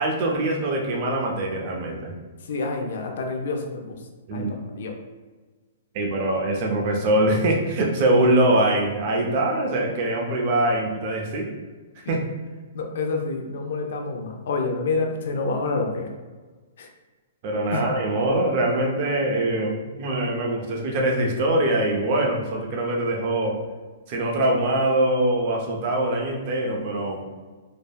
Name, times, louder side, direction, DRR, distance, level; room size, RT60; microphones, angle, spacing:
voice 1, 0.0-2.1 4.3-4.5 5.9-11.5 12.0-12.2 17.4-23.6 24.1-27.2, right 1 dB, 35° right, 0 dB, 0.4 m, -23 dB
voice 2, 2.5-4.0 4.3-5.0 12.7-16.1 16.8-16.9 17.7-17.8, left 3 dB, 60° left, 3 dB, 0.4 m, -28 dB
3.3 x 2.0 x 2.2 m, 1.3 s
hypercardioid pair, 170°, 0 cm